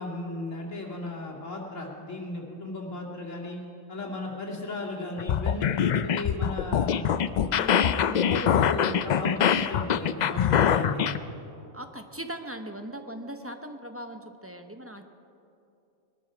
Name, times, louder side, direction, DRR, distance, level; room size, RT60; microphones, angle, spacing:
voice 1, 0.0-3.6 3.9-7.1 7.5-11.1, left 2 dB, 85° left, -2 dB, 2.6 m, -35 dB
sound 1, 5.2-11.2, left 8 dB, 70° left, 0.4 m, -24 dB
voice 2, 11.7-15.1, right 1 dB, 15° right, 6 dB, 0.6 m, -39 dB
21.0 x 12.5 x 5.1 m, 2.7 s
omnidirectional pair, 1.3 m